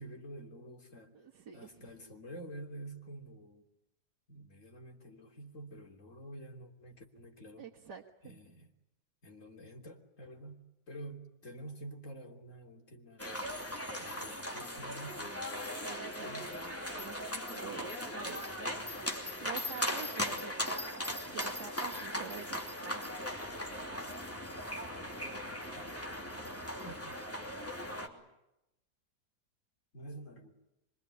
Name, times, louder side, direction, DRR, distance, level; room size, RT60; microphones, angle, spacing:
voice 1, 0.0-1.1 1.5-3.7 4.3-7.7 8.2-8.7 9.2-13.4 14.0-15.2 16.2-16.5 25.7-26.1 26.8-27.2 28.0-28.3 29.9-30.5, right 1 dB, 50° left, 1 dB, 3.7 m, -48 dB
voice 2, 1.1-1.9 7.6-8.0 15.8-16.3 16.9-18.5 18.9-23.2, right 6 dB, 90° right, -2 dB, 2.3 m, -47 dB
sound 1, 13.2-28.1, equal, 10° left, 2.9 m, -38 dB
25.5 x 24.0 x 9.8 m, 0.88 s
omnidirectional pair, 1.8 m